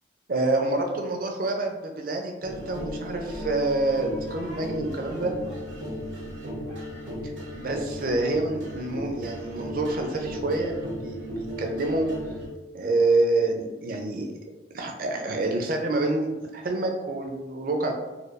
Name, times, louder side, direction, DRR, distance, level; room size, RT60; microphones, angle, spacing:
voice 1, 0.3-5.3 7.6-10.7 11.0-12.1 12.7-14.3 14.7-17.9, right 2 dB, 50° right, 3 dB, 0.5 m, -27 dB
sound 1, 2.4-12.5, equal, 80° right, 0.9 m, -36 dB
4.1 x 2.3 x 2.5 m, 1.1 s
head